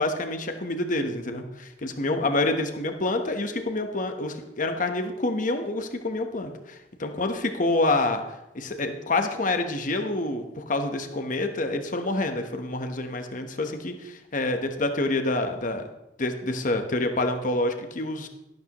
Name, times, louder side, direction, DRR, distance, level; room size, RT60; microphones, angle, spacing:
voice 1, 0.0-8.2 8.5-15.8 16.2-18.3, left 2 dB, 45° left, 6 dB, 1.1 m, -27 dB
12.0 x 12.0 x 3.0 m, 0.94 s
head